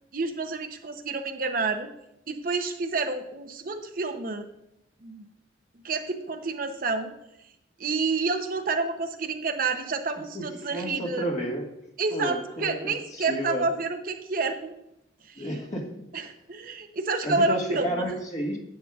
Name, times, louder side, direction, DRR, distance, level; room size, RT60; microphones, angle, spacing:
voice 1, 0.1-1.9 2.3-4.5 5.0-5.2 5.8-7.1 7.8-11.3 12.0-14.7 15.3-15.5 16.1-18.1, right 3 dB, 50° right, 6 dB, 0.7 m, -29 dB
voice 2, 10.7-11.7 12.1-13.7 15.4-16.1 17.2-18.6, equal, 40° left, 0 dB, 1.6 m, -31 dB
11.0 x 8.4 x 2.4 m, 0.81 s
head